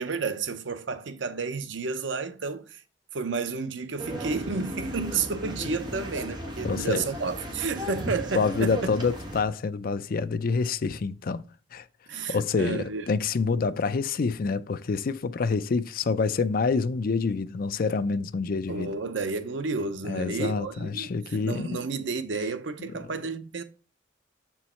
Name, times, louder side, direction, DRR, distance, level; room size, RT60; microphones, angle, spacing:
voice 1, 0.0-2.8 3.1-8.8 12.1-13.1 18.7-23.6, right 4 dB, 80° right, 0.7 m, -31 dB
sound 1, 4.0-9.4, equal, 25° right, 1.5 m, -35 dB
voice 2, 6.6-7.0 8.4-11.4 11.7-11.8 12.1-18.9 20.0-21.8, left 4 dB, 50° left, 0.4 m, -27 dB
7.0 x 4.6 x 4.3 m
head